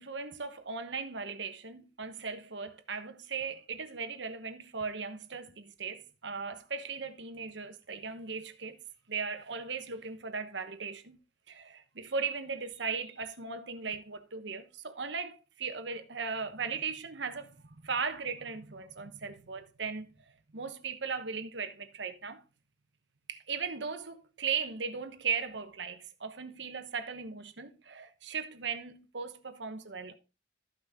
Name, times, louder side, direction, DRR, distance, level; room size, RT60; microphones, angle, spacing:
voice 1, 0.0-8.8 9.1-11.2 11.5-20.1 20.5-22.4 23.3-30.2, right 5 dB, 75° right, 1.1 m, -37 dB
13.5 x 6.1 x 3.6 m
head